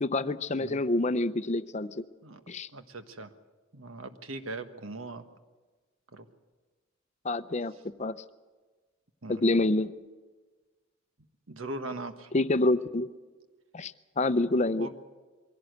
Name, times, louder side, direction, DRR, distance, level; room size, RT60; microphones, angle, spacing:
voice 1, 0.0-2.0 2.5-2.7 7.2-7.7 8.0-8.2 9.3-9.9 12.3-13.1 13.7-14.9, left 2 dB, 35° left, 13 dB, 0.6 m, -27 dB
voice 2, 2.7-3.3 3.7-5.2 6.1-6.3 9.2-9.5 11.5-12.3 14.8-14.9, right 2 dB, 80° right, 8 dB, 1.4 m, -40 dB
23.0 x 16.5 x 8.0 m, 1.3 s
head